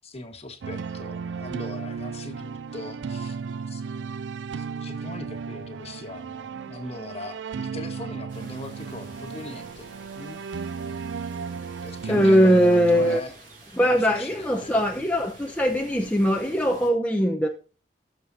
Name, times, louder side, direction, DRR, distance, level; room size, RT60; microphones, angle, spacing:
voice 1, 0.0-3.4 3.7-3.8 4.6-10.4 11.8-13.4 13.8-14.8, left 2 dB, 35° left, 1.5 m, -40 dB
sound 1, 0.6-13.2, right 5 dB, 85° right, 0.4 m, -35 dB
sound 2, 8.3-16.9, right 2 dB, 50° right, 3.8 m, -49 dB
voice 2, 12.1-13.2 13.8-17.5, equal, 10° left, 0.8 m, -20 dB
18.0 x 6.8 x 2.7 m
head